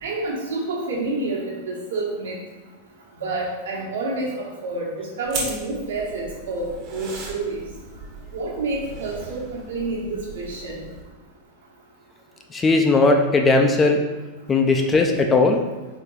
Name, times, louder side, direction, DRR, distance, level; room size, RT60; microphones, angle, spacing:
voice 1, 0.0-2.4 3.2-7.6 8.3-10.8, right 2 dB, 65° right, -4 dB, 1.3 m, -28 dB
sound 1, 5.3-11.0, right 2 dB, 40° right, 1.0 m, -37 dB
voice 2, 12.5-14.0 14.5-15.6, left 3 dB, 20° left, 3 dB, 0.4 m, -18 dB
4.3 x 3.7 x 3.3 m, 1.2 s
figure-of-eight pair, 90°, 0 cm